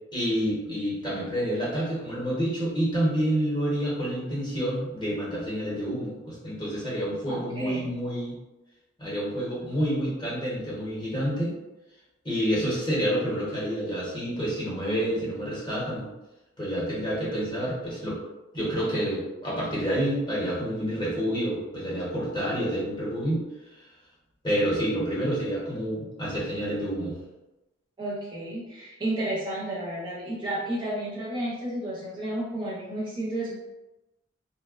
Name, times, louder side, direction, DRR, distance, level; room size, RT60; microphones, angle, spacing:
voice 1, 0.1-8.3 9.0-11.5 12.2-16.1 16.6-18.2 18.5-23.4 24.4-27.2, equal, 20° left, -7 dB, 0.7 m, -28 dB
voice 2, 7.3-7.9 28.0-33.6, right 1 dB, 20° right, -7 dB, 0.4 m, -32 dB
2.7 x 2.0 x 2.3 m, 1.0 s
head